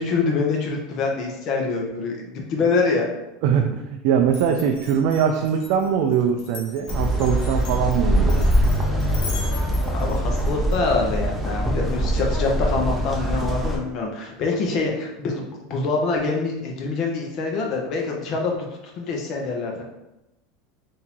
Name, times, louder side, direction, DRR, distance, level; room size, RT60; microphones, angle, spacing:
voice 1, 0.0-3.1 9.9-18.5 19.0-19.8, left 4 dB, 45° left, 0 dB, 0.8 m, -25 dB
voice 2, 3.4-8.5, right 7 dB, 60° right, 4 dB, 0.3 m, -22 dB
Glass, 4.3-10.8, left 4 dB, 75° left, 0.9 m, -39 dB
sound 1, 6.9-13.8, equal, 5° right, 0.6 m, -23 dB
3.7 x 2.7 x 2.9 m, 0.95 s
supercardioid pair, 140°, 0 cm